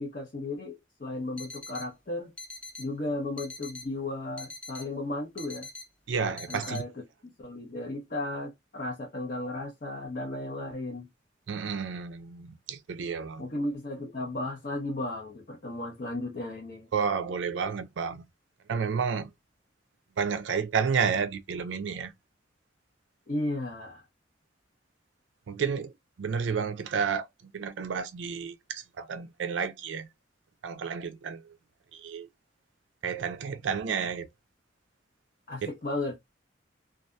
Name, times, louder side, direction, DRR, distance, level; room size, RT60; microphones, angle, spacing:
voice 1, 0.0-2.3 2.8-5.7 6.5-6.9 7.2-11.1 13.4-16.9 23.3-24.1 35.5-36.1, left 2 dB, 45° left, 0.7 m, -35 dB
sound 1, 1.4-1.9 2.4-2.9 3.4-3.9 4.4-4.9 5.4-5.9 6.4-6.8, left 2 dB, 5° left, 0.4 m, -43 dB
voice 2, 6.1-6.8 11.5-13.5 16.9-18.3 18.7-19.3 20.2-22.1 25.5-25.9 26.2-30.1 30.6-31.6 31.9-32.3 33.0-34.3 35.6-35.7, right 6 dB, 75° right, 0.4 m, -31 dB
2.6 x 2.3 x 2.2 m
head